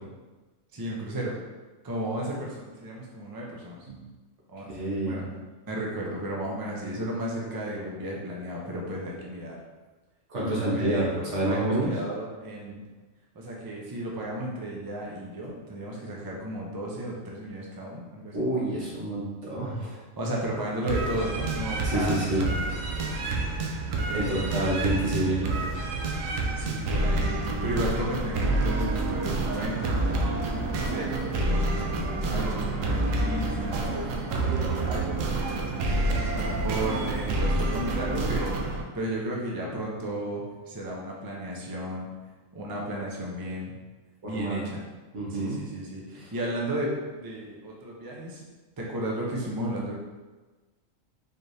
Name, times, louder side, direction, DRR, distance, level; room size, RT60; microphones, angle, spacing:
voice 1, 0.7-1.3 1.8-3.8 4.5-4.7 5.0-5.2 5.7-9.6 10.4-12.8 13.3-18.5 20.2-22.5 24.1-24.9 26.5-30.3 30.7-34.0 34.4-42.1 42.5-43.7 44.2-44.8 45.3-48.4 48.8-49.9, right 1 dB, 35° right, -3 dB, 0.3 m, -34 dB
voice 2, 4.7-5.3 10.3-12.0 18.3-20.0 21.8-22.5 24.1-25.7 44.2-44.7 45.1-45.6 46.1-46.3, right 1 dB, 65° right, -6 dB, 1.5 m, -28 dB
sound 1, 20.9-38.8, right 2 dB, 80° right, 1.0 m, -28 dB
4.2 x 3.2 x 2.7 m, 1.2 s
omnidirectional pair, 1.4 m